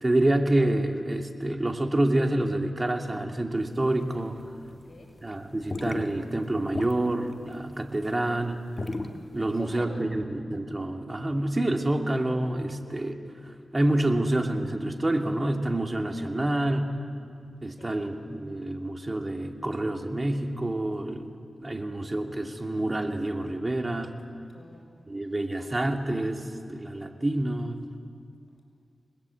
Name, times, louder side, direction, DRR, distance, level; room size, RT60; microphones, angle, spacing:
voice 1, 0.0-4.4 5.2-8.6 9.3-16.9 17.6-21.4 21.6-24.1 25.1-27.8, right 1 dB, 30° right, 4 dB, 2.5 m, -27 dB
sound 1, 3.6-4.8 5.1-9.7, left 2 dB, 40° left, 1.8 m, -35 dB
voice 2, 4.7-5.1 9.4-10.1 17.7-18.0 24.5-24.9, left 3 dB, 65° left, 1 dB, 7.1 m, -46 dB
29.0 x 20.5 x 8.5 m, 2.3 s
cardioid pair, 60°, 0 cm